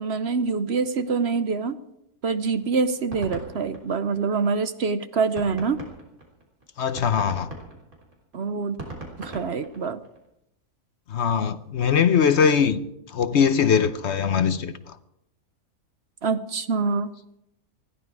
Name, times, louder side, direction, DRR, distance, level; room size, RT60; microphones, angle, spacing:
voice 1, 0.0-1.8 2.2-5.8 8.3-8.8 9.2-10.0 16.2-17.1, right 4 dB, 55° right, 0.9 m, -25 dB
sound 1, 2.5-4.6 5.0-5.1 5.4-10.3, right 2 dB, 90° right, 4.1 m, -39 dB
voice 2, 6.8-7.5 11.1-12.8 13.1-14.7, left 7 dB, 60° left, 0.9 m, -21 dB
20.0 x 15.0 x 4.7 m
omnidirectional pair, 1.5 m